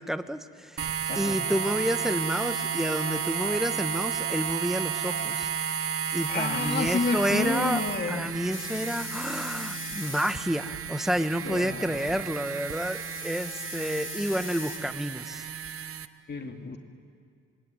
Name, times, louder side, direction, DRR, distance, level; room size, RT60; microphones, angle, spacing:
voice 1, 0.0-0.9 1.1-5.8 6.1-7.8 8.1-15.5, equal, ahead, 10 dB, 1.2 m, -30 dB
sound 1, 0.8-16.1, right 7 dB, 45° right, 1.0 m, -33 dB
sound 2, 1.1-5.8 6.2-6.6 6.9-8.8 9.5-9.7 11.5-12.0 12.2-12.3 13.0-13.5 13.9-14.0, right 4 dB, 70° right, 6.4 m, -45 dB
voice 2, 6.3-8.3 11.4-12.2 16.3-16.8, left 4 dB, 35° left, 4 dB, 2.4 m, -30 dB
sound 3, 8.5-10.3 12.1-14.8, left 6 dB, 60° left, 4.3 m, -41 dB
25.5 x 23.0 x 9.1 m, 2.2 s
cardioid pair, 90°, 30 cm